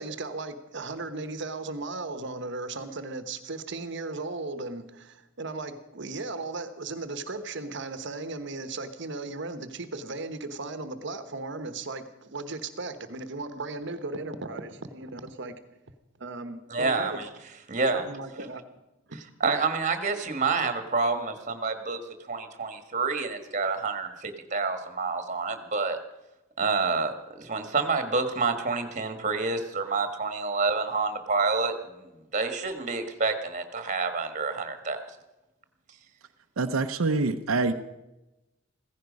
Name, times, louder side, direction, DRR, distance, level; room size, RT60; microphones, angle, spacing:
voice 1, 0.0-15.5 16.2-17.2 17.9-18.6 19.1-19.2, right 3 dB, 60° right, 10 dB, 1.2 m, -36 dB
voice 2, 16.7-17.3 17.7-18.0 19.4-22.0 22.3-26.0 26.6-35.0, right 4 dB, 35° right, 8 dB, 1.6 m, -28 dB
voice 3, 36.6-37.7, right 3 dB, 85° right, 6 dB, 0.7 m, -25 dB
16.0 x 15.5 x 5.3 m, 0.99 s
head